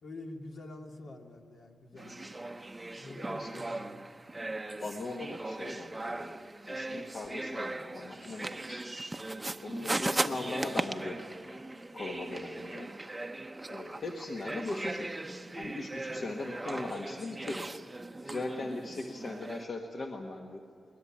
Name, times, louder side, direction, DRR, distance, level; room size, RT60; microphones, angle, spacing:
voice 1, 0.0-2.3 3.0-4.1 15.9-16.2, left 2 dB, 65° left, 1 dB, 2.5 m, -47 dB
sound 1, 2.0-19.6, right 2 dB, 15° right, 0.8 m, -38 dB
voice 2, 3.0-3.5 4.8-8.9 9.6-11.2 11.9-12.9 13.7-15.2 15.5-17.7 18.2-20.6, left 2 dB, 50° left, 2 dB, 1.6 m, -39 dB
21.5 x 20.0 x 8.8 m, 2.4 s
wide cardioid pair, 125°, 0 cm